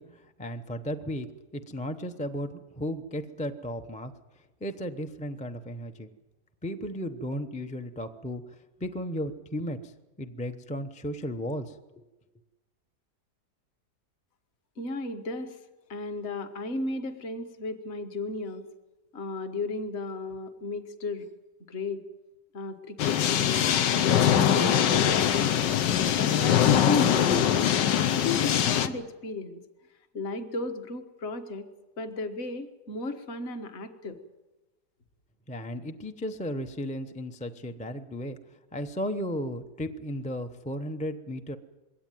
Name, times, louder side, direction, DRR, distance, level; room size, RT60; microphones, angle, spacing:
voice 1, 0.0-4.1 4.6-6.1 6.6-12.0 35.5-38.4 38.7-41.6, equal, 10° left, 6 dB, 0.5 m, -35 dB
voice 2, 14.8-15.6 15.9-18.7 19.1-21.3 21.7-22.0 22.5-25.6 26.2-29.6 30.1-31.7 32.0-34.2, left 3 dB, 40° left, 6 dB, 1.6 m, -34 dB
sound 1, 23.0-28.9, left 10 dB, 90° left, 1.6 m, -23 dB
22.0 x 17.0 x 9.2 m, 1.1 s
omnidirectional pair, 1.8 m